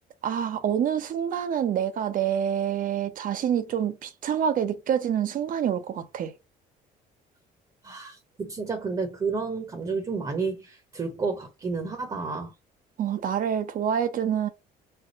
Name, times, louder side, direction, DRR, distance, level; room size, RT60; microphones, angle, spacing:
voice 1, 0.2-6.3 13.0-14.5, right 9 dB, 55° right, 0.7 m, -27 dB
voice 2, 7.8-12.5, right 4 dB, 25° right, 0.9 m, -31 dB
3.3 x 2.2 x 4.0 m
cardioid pair, 110°, 17 cm